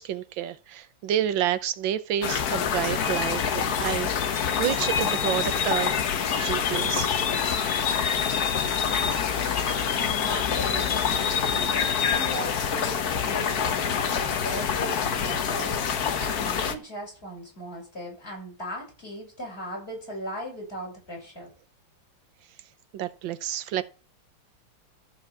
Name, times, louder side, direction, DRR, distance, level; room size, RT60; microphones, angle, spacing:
voice 1, 0.0-6.1 6.4-7.1 7.5-7.6 22.9-23.8, right 11 dB, 80° right, 1.5 m, -29 dB
sound 1, 2.2-16.8, left 7 dB, 55° left, 1.4 m, -26 dB
voice 2, 9.9-21.5, equal, 30° left, 7.5 m, -38 dB
14.0 x 4.7 x 7.3 m
omnidirectional pair, 2.1 m